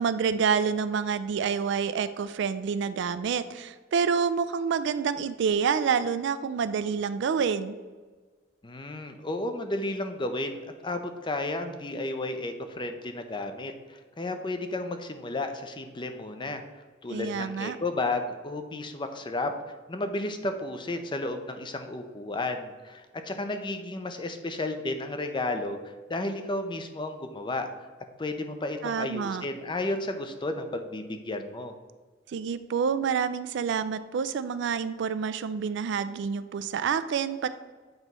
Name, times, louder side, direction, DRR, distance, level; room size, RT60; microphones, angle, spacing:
voice 1, 0.0-7.8 17.1-17.8 28.8-29.4 32.3-37.5, right 6 dB, 65° right, 13 dB, 0.3 m, -28 dB
voice 2, 8.6-16.6 17.0-19.5 19.9-27.7 28.2-31.7, left 2 dB, 25° left, 7 dB, 0.5 m, -33 dB
7.9 x 3.1 x 5.3 m, 1.4 s
head